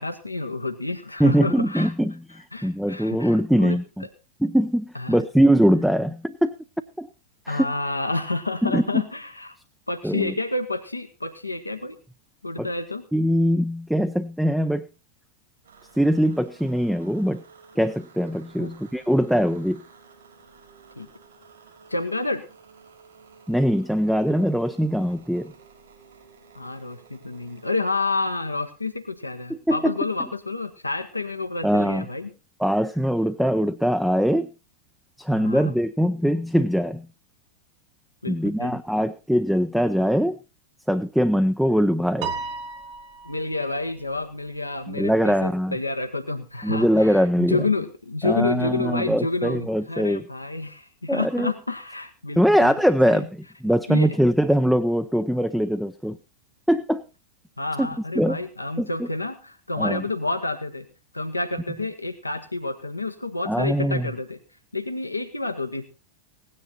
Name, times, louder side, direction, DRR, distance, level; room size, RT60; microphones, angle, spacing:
voice 1, 0.0-1.9 2.5-3.8 4.9-5.2 7.5-9.6 9.9-12.0 12.4-13.0 18.6-18.7 21.0-21.1 21.9-22.4 26.5-32.3 35.3-35.7 38.2-38.8 43.2-52.7 53.0-53.2 53.9-54.2 57.6-60.9 61.1-64.4 64.7-65.8, left 3 dB, 85° left, 6 dB, 1.0 m, -29 dB
voice 2, 1.2-4.1 4.4-6.5 7.0-7.1 7.5-7.7 8.6-9.0 10.0-10.3 12.6-12.7 13.1-14.9 16.0-17.4 17.8-19.8 23.5-25.5 29.5-29.9 31.6-32.0 32.6-34.5 35.2-37.1 38.3-40.4 40.9-42.3 44.9-45.8 46.6-47.6 48.2-50.2 51.1-51.5 52.4-56.2 56.7-57.0 57.8-57.9 58.2-58.4 58.8-59.1 59.8-60.0 63.5-64.1, equal, ahead, 9 dB, 0.6 m, -22 dB
sound 1, 15.6-27.8, right 5 dB, 70° right, 5.5 m, -52 dB
Piano, 42.2-43.8, right 4 dB, 45° right, 1.5 m, -33 dB
17.0 x 9.9 x 4.0 m, 0.31 s
figure-of-eight pair, 90°, 0 cm